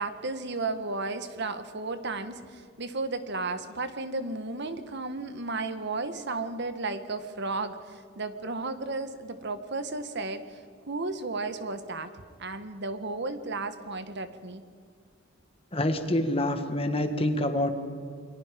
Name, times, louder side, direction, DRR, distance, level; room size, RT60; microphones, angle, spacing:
voice 1, 0.0-12.1 12.4-14.6, right 3 dB, 60° right, 10 dB, 1.5 m, -34 dB
voice 2, 15.7-17.7, left 1 dB, 30° left, 7 dB, 1.9 m, -26 dB
29.0 x 22.5 x 5.2 m, 2.2 s
head